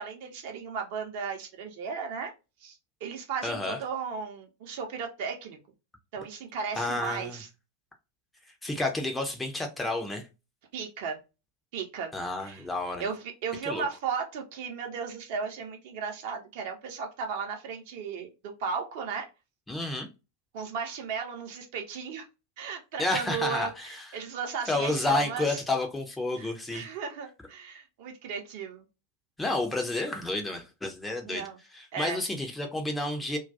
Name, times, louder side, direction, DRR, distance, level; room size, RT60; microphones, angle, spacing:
voice 1, 0.0-2.3 2.6-5.6 6.1-7.5 10.7-11.2 11.7-12.1 12.4-12.6 13.0-19.3 20.5-22.3 22.6-23.7 24.1-25.6 26.4-28.8 31.2-31.6 31.9-32.2, right 6 dB, 50° right, 0.6 m, -35 dB
voice 2, 3.4-3.8 6.7-7.4 8.6-10.3 12.1-13.1 13.7-13.8 19.7-20.1 23.0-24.2 24.7-26.9 29.4-33.4, left 2 dB, 10° left, 0.5 m, -30 dB
2.3 x 2.2 x 2.5 m
figure-of-eight pair, 90°, 0 cm